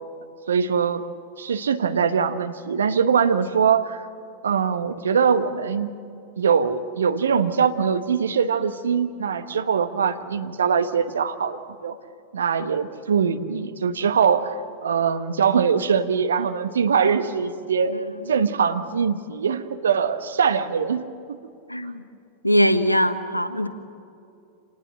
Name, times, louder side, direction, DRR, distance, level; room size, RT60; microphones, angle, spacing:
voice 1, 0.5-1.0 1.4-4.1 4.4-5.9 6.4-12.0 12.3-18.0 18.3-21.4, right 6 dB, 70° right, 10 dB, 1.2 m, -22 dB
voice 2, 21.7-22.0 22.4-23.7, equal, 85° left, 11 dB, 1.2 m, -21 dB
27.0 x 19.0 x 7.7 m, 2.6 s
figure-of-eight pair, 90°, 0 cm